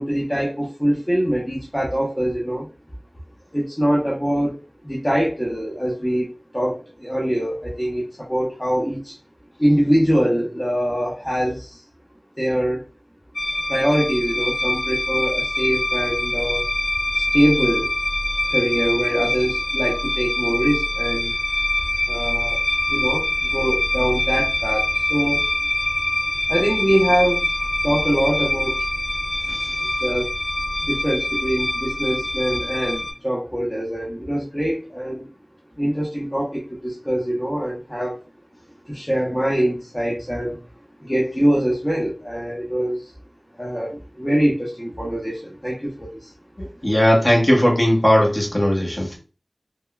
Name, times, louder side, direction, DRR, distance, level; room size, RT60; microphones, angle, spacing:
voice 1, 0.0-2.7 3.5-4.6 4.8-9.2 9.6-11.8 12.4-12.9 13.7-16.7 17.1-17.9 18.5-21.3 22.1-22.6 22.9-25.5 26.5-28.8 29.8-30.3 30.8-35.3 35.8-38.2 38.9-40.6 41.0-43.1 43.6-46.3, equal, 15° left, 0.7 m, -23 dB
sound 1, 13.3-33.1, left 1 dB, 70° left, 0.7 m, -24 dB
voice 2, 46.6-49.2, equal, 30° left, 1.0 m, -18 dB
3.5 x 2.2 x 2.2 m
wide cardioid pair, 45°, 0 cm